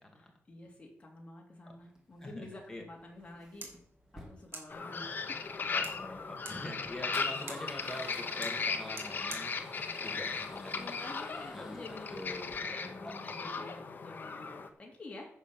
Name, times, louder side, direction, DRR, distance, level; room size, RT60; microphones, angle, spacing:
voice 1, 0.1-3.7 4.3-5.7 10.1-10.2 10.8-15.3, left 2 dB, 25° left, -1 dB, 2.6 m, -49 dB
Male speech man speaking / Car / Engine starting, 1.8-12.9, equal, 10° right, 2.4 m, -54 dB
voice 2, 2.2-2.8 5.7-9.7 10.0-10.9 11.5-11.8 12.1-13.3, left 1 dB, 10° left, 1 dB, 2.2 m, -45 dB
sound 1, 3.5-11.2, right 3 dB, 50° right, 2.4 m, -52 dB
sound 2, 4.7-14.7, left 4 dB, 40° left, 1.0 m, -37 dB
10.0 x 6.7 x 7.0 m, 0.66 s
wide cardioid pair, 180°, 5 cm